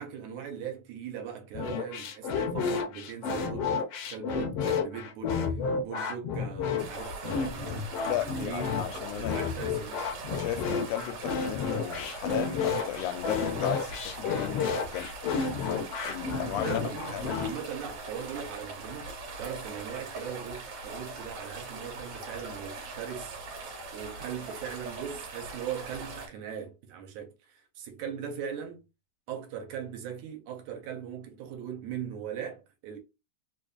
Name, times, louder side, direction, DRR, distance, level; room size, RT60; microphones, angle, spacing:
voice 1, 0.0-3.7 4.1-8.9 9.1-10.1 16.3-23.4 23.9-28.8 29.3-33.0, right 8 dB, 80° right, 2.2 m, -40 dB
sound 1, 1.5-17.5, left 5 dB, 75° left, 1.4 m, -31 dB
sound 2, 6.8-26.3, right 3 dB, 60° right, 1.9 m, -41 dB
voice 2, 8.1-9.5 10.0-15.1 15.6-16.7 17.1-17.3, left 12 dB, 90° left, 2.1 m, -35 dB
4.8 x 2.6 x 2.3 m
omnidirectional pair, 3.5 m